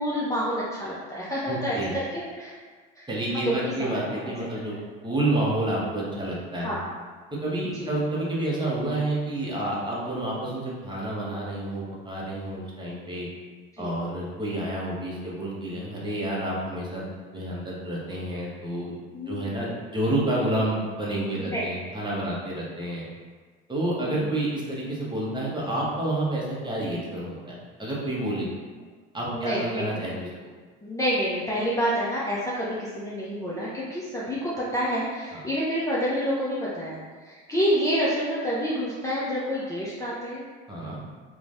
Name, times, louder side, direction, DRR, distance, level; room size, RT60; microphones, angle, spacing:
voice 1, 0.0-2.5 3.0-3.1 3.3-4.3 6.5-6.9 7.7-7.9 13.8-13.9 19.1-19.5 21.4-21.6 24.0-24.3 29.3-30.0 30.8-40.4, equal, 10° left, -8 dB, 0.5 m, -28 dB
voice 2, 1.5-1.9 3.1-4.7 5.0-6.7 7.4-13.3 13.8-17.0 17.3-18.9 19.3-23.1 23.7-27.5 27.8-28.5 29.1-30.3 35.3-35.4 40.7-41.0, right 1 dB, 15° right, -5 dB, 0.8 m, -29 dB
3.0 x 2.2 x 2.5 m, 1.5 s
supercardioid pair, 80°, 29 cm